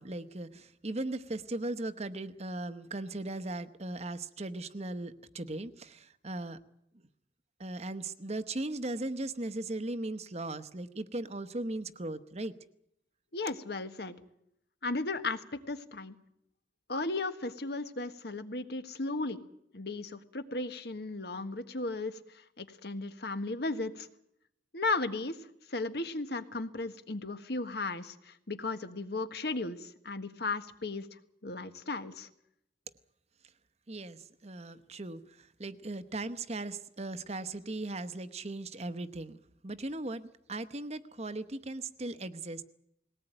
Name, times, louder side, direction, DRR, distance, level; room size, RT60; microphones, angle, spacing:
voice 1, 0.0-6.6 7.6-12.5 33.9-42.7, right 2 dB, 35° right, 11 dB, 1.0 m, -38 dB
voice 2, 13.3-14.2 14.8-16.1 16.9-19.4 19.7-24.1 24.7-25.4 25.7-31.1 31.4-32.3, left 3 dB, 60° left, 10 dB, 1.5 m, -35 dB
20.0 x 18.0 x 9.0 m, 0.75 s
head